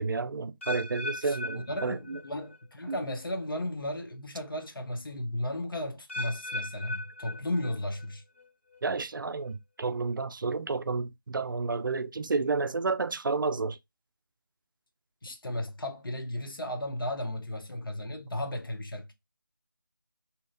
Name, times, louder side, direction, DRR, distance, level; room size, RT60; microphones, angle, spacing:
voice 1, 0.0-2.2 2.9-3.0 8.8-13.8, right 4 dB, 65° right, 0.4 m, -31 dB
sound 1, 0.6-2.6 2.9-3.3 4.0-4.1 6.1-8.0 8.4-8.8 9.5-9.6, left 2 dB, 35° left, 0.4 m, -39 dB
voice 2, 1.2-8.2 15.2-19.1, left 1 dB, 75° left, 0.8 m, -35 dB
2.8 x 2.4 x 2.5 m
figure-of-eight pair, 170°, 12 cm